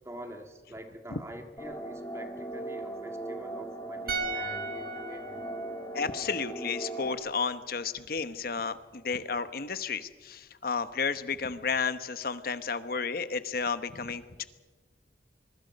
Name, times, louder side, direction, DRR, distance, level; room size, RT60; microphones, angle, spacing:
voice 1, 0.0-5.4, right 1 dB, 15° right, 1.8 m, -46 dB
sound 1, 1.6-7.1, right 1 dB, 20° left, 2.4 m, -39 dB
sound 2, 4.1-7.3 7.6-7.7, right 3 dB, 55° right, 2.0 m, -38 dB
voice 2, 5.9-14.4, left 5 dB, 55° left, 1.1 m, -32 dB
25.0 x 22.5 x 5.3 m
head